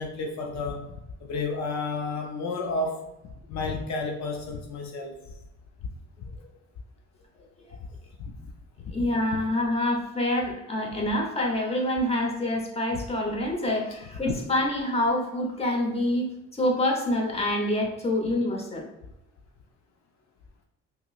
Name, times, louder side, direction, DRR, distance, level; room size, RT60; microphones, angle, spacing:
voice 1, 0.0-5.3 7.7-7.8 8.2-8.5 8.8-9.4 14.3-14.4, left 3 dB, 65° left, 3 dB, 0.5 m, -32 dB
voice 2, 8.9-18.9, left 1 dB, 20° left, 0 dB, 0.9 m, -26 dB
5.3 x 2.0 x 2.4 m, 0.94 s
cardioid pair, 90°, 30 cm